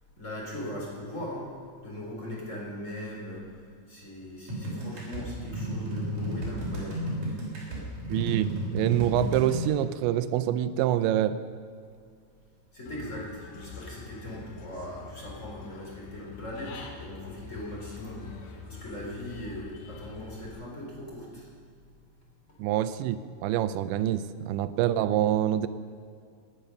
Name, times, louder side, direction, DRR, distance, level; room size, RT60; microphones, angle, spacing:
voice 1, 0.2-1.6 1.8-3.6 3.9-7.1 12.7-21.5, left 1 dB, 15° left, -4 dB, 3.4 m, -39 dB
sound 1, 4.5-9.6, right 1 dB, 50° right, 5.3 m, -33 dB
voice 2, 8.1-11.4 22.6-25.7, right 12 dB, 85° right, 13 dB, 2.8 m, -26 dB
Human voice / Bird, 12.9-20.5, left 5 dB, 85° left, 3.8 m, -45 dB
18.0 x 10.5 x 6.6 m, 2.3 s
omnidirectional pair, 5.2 m